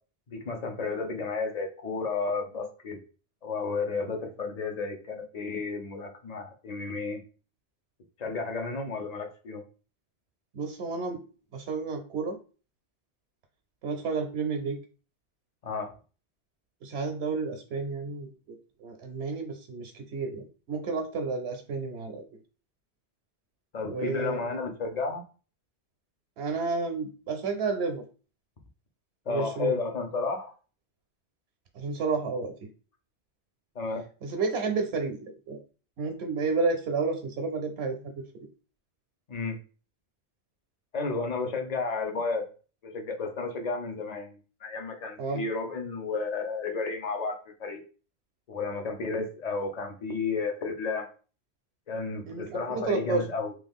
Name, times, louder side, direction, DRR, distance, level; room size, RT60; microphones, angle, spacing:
voice 1, 0.3-3.0 3.4-7.2 8.2-9.6 15.6-15.9 23.7-25.2 29.3-30.5 33.8-34.1 39.3-39.6 40.9-42.5 42.8-47.8 48.5-51.1 51.9-53.5, left 4 dB, 45° left, 4 dB, 0.6 m, -32 dB
voice 2, 10.5-11.2 11.5-12.4 13.8-14.8 16.8-18.6 18.8-22.2 23.8-24.6 26.4-28.0 29.3-29.8 31.7-32.5 34.2-35.6 36.0-38.2 45.2-45.4 52.3-53.2, right 4 dB, 75° right, 5 dB, 0.8 m, -31 dB
3.0 x 2.3 x 3.5 m, 0.36 s
omnidirectional pair, 1.1 m